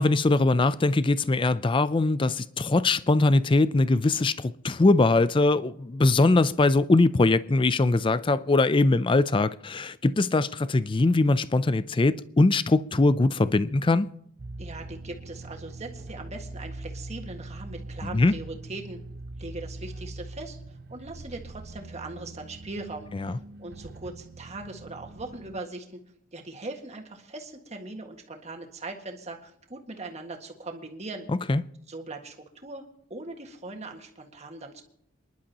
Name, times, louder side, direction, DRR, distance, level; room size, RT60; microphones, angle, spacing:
voice 1, 0.0-14.1 18.1-18.3 31.5-31.6, left 2 dB, 25° left, 0.4 m, -22 dB
sound 1, 14.4-25.6, right 2 dB, 50° right, 0.6 m, -42 dB
voice 2, 14.6-19.0 19.4-26.0 26.3-31.3 31.9-32.8 33.1-34.8, right 2 dB, 35° right, 1.8 m, -40 dB
28.0 x 11.0 x 2.9 m
head